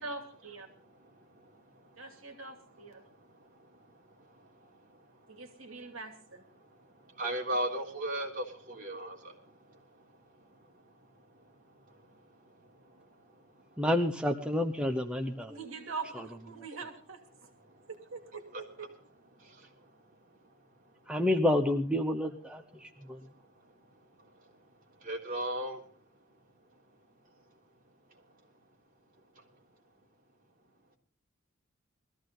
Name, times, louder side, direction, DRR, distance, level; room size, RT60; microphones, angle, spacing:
voice 1, 0.0-0.7 2.0-3.0 5.3-6.4 15.5-17.2 17.9-18.9, right 4 dB, 70° right, 5 dB, 2.6 m, -43 dB
voice 2, 1.3-6.0 6.5-13.9 15.2-15.6 16.5-16.6 17.4-17.9 18.5-18.9 19.3-21.2 22.5-26.4 26.7-26.8 27.2-27.6 28.1-28.4 29.3-29.5, right 1 dB, 45° right, -1 dB, 3.5 m, -43 dB
voice 3, 13.8-15.5 21.1-22.9, left 1 dB, 5° right, 4 dB, 1.0 m, -29 dB
20.5 x 14.5 x 3.9 m, 0.42 s
head